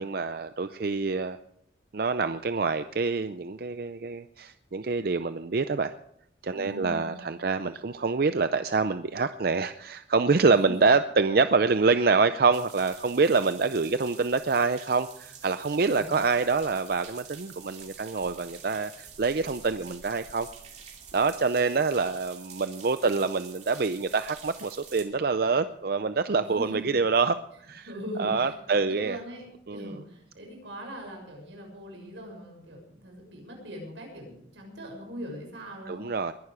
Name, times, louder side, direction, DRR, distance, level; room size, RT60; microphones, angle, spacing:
voice 1, 0.0-1.4 1.9-5.9 6.4-20.5 21.1-27.4 27.6-27.9 28.2-29.2 29.7-29.9 35.9-36.3, right 4 dB, 55° right, 11 dB, 0.5 m, -26 dB
voice 2, 6.5-7.2 10.5-10.7 15.8-16.2 26.4-26.8 27.8-36.0, equal, 85° right, 1 dB, 6.6 m, -41 dB
sound 1, 12.5-25.0, right 7 dB, 40° right, 2.6 m, -48 dB
21.5 x 11.0 x 5.0 m, 0.74 s
head